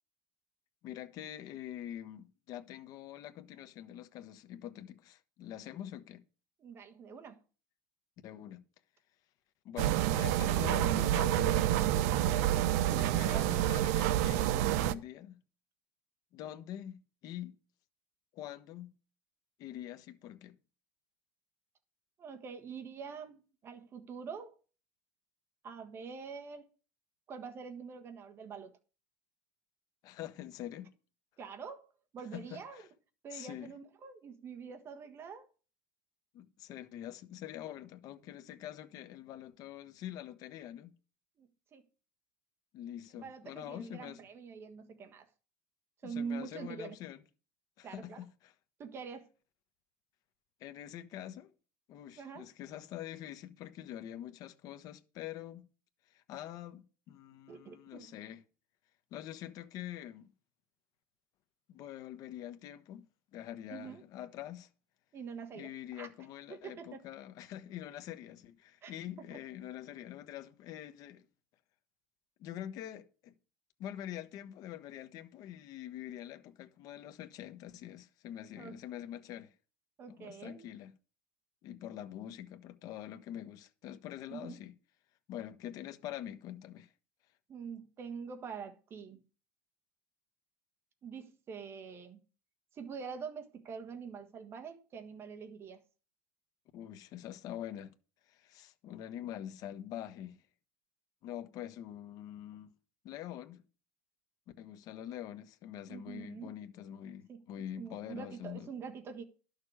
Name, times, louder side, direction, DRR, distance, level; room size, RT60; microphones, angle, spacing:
voice 1, 0.8-6.2 8.2-8.6 9.6-12.2 13.0-15.4 16.3-17.5 18.3-18.9 19.6-20.6 30.0-30.9 32.3-32.9 33.3-33.7 36.3-40.9 42.7-44.2 46.0-47.2 47.8-48.5 50.6-51.5 51.9-55.7 56.1-58.4 59.1-60.3 61.7-63.1 63.3-64.7 65.5-71.2 72.4-73.3 73.8-79.5 80.1-80.9 81.6-84.7 85.3-86.9 96.7-97.9 98.3-100.4 101.2-102.7 103.0-103.6 104.6-108.7, left 11 dB, 45° left, 1.1 m, -45 dB
voice 2, 6.6-7.4 12.9-13.5 22.2-24.5 25.6-26.7 27.3-28.8 31.4-32.8 33.2-35.5 41.4-41.8 43.2-45.3 46.0-47.0 47.8-48.2 48.8-49.3 52.2-52.4 57.5-58.1 63.7-64.0 65.1-66.1 66.5-67.1 68.8-68.9 78.6-78.8 80.0-80.7 84.3-84.6 87.5-89.2 91.0-92.2 92.7-95.8 105.9-106.5 107.3-109.2, right 6 dB, 25° right, 1.4 m, -45 dB
sound 1, 9.8-14.9, right 12 dB, 75° right, 0.8 m, -28 dB
11.5 x 6.7 x 4.8 m
cardioid pair, 155°, 9 cm